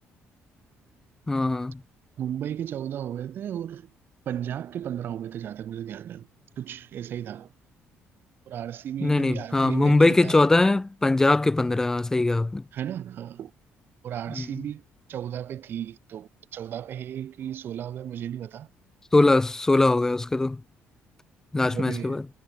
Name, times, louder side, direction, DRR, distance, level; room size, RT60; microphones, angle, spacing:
voice 1, 1.3-1.8 9.0-12.6 14.3-14.5 19.1-20.6 21.5-22.2, left 2 dB, 10° left, 0.5 m, -21 dB
voice 2, 2.2-3.9 4.3-6.3 6.6-7.5 8.5-10.4 12.7-13.5 14.0-14.8 15.1-18.7 21.7-22.2, right 10 dB, 55° right, 3.0 m, -34 dB
cardioid pair, 140°, 4 cm